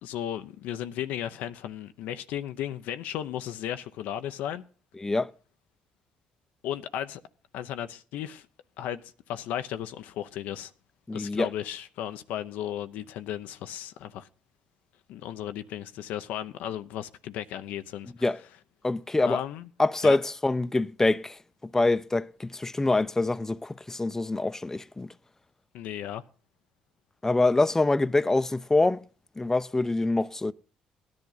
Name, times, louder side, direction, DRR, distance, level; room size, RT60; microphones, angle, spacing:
voice 1, 0.0-4.6 6.6-7.2 7.5-8.5 8.8-9.0 9.3-10.7 11.1-14.3 15.1-18.1 19.2-19.7 20.0-20.2 25.7-26.2, left 11 dB, 75° left, 0.7 m, -35 dB
voice 2, 5.0-5.3 11.1-11.5 18.2-18.4 18.8-19.4 19.8-21.4 21.7-25.1 27.2-29.0 29.4-30.5, left 2 dB, 15° left, 0.7 m, -25 dB
17.0 x 10.5 x 4.0 m
hypercardioid pair, 60°, 3 cm